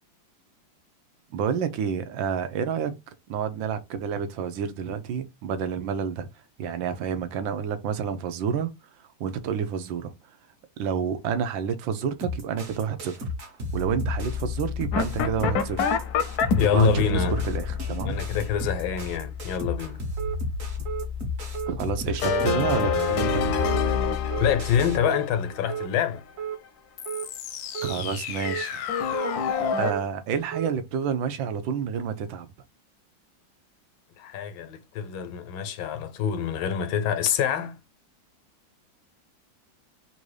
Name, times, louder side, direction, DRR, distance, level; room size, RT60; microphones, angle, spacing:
voice 1, 1.3-2.9 3.3-6.3 6.6-8.7 9.2-10.1 10.8-13.2 13.7-15.8 16.7-18.2 21.7-23.5 27.8-28.8 29.8-32.5, right 7 dB, 80° right, 1.4 m, -29 dB
sound 1, 12.2-25.0, left 3 dB, 45° right, 1.4 m, -32 dB
sound 2, 14.9-19.0 22.2-26.0 27.0-29.9, left 6 dB, 65° left, 1.0 m, -28 dB
voice 2, 16.6-17.4 18.0-20.0 24.4-26.2 34.2-37.8, left 8 dB, 90° left, 1.5 m, -26 dB
sound 3, 20.2-20.4 20.9-21.1 21.5-21.8 22.2-22.4 22.9-23.1 23.6-23.8 24.3-24.5 25.0-25.2 25.7-25.9 26.4-26.6 27.1-27.3 27.7-28.0 28.4-28.7 29.1-29.3 29.8-30.0 30.5-30.7, right 8 dB, 60° right, 0.8 m, -33 dB
3.6 x 2.7 x 4.7 m
omnidirectional pair, 2.1 m